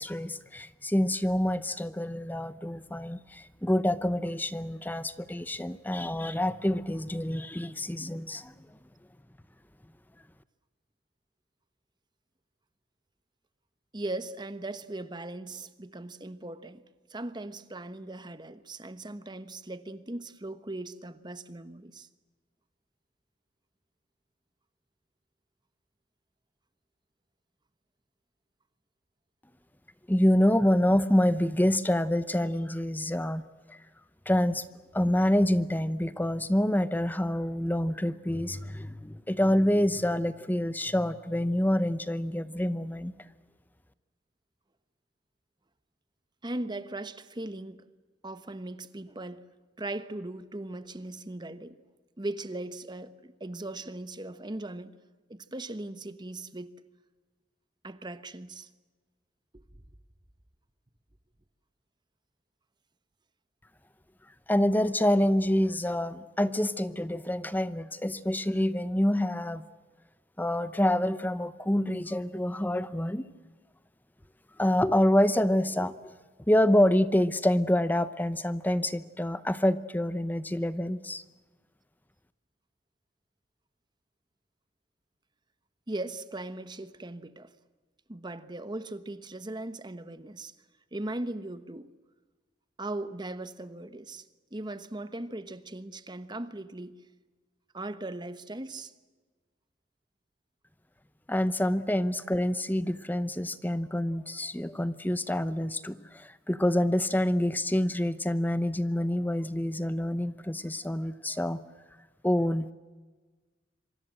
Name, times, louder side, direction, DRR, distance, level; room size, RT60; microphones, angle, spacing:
voice 1, 0.0-8.7 30.1-33.4 33.7-33.8 34.3-34.6 34.9-43.1 64.5-69.6 70.4-73.3 74.6-76.0 76.5-81.2 101.3-111.6 112.2-112.7, left 1 dB, 10° left, 0.8 m, -27 dB
voice 2, 13.9-16.8 17.1-22.1 46.4-47.9 48.2-49.4 49.8-51.8 52.2-54.9 55.3-56.7 57.8-58.7 59.5-59.8 85.9-87.5 88.1-90.5 90.9-91.9 92.8-94.2 94.5-97.0 97.7-98.9, right 2 dB, 25° right, 1.1 m, -38 dB
26.5 x 24.5 x 7.7 m
head